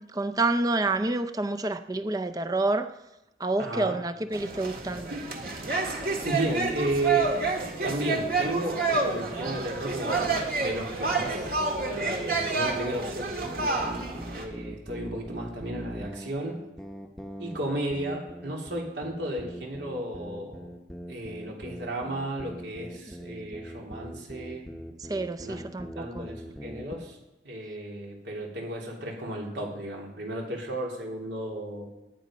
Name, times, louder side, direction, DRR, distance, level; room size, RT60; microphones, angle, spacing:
voice 1, 0.0-2.9 3.4-5.1 25.0-26.3, right 2 dB, 20° right, 9 dB, 0.5 m, -28 dB
voice 2, 3.6-4.0 5.1-5.3 6.2-11.6 11.9-16.6 17.4-20.7 21.1-24.6 25.4-25.6 26.0-27.2 27.4-31.9, right 1 dB, 80° right, -1 dB, 3.1 m, -34 dB
sound 1, 4.3-14.5, right 3 dB, 55° right, 1.8 m, -29 dB
sound 2, 13.5-27.1, equal, ahead, 0.9 m, -41 dB
19.0 x 9.5 x 5.1 m, 1.0 s
head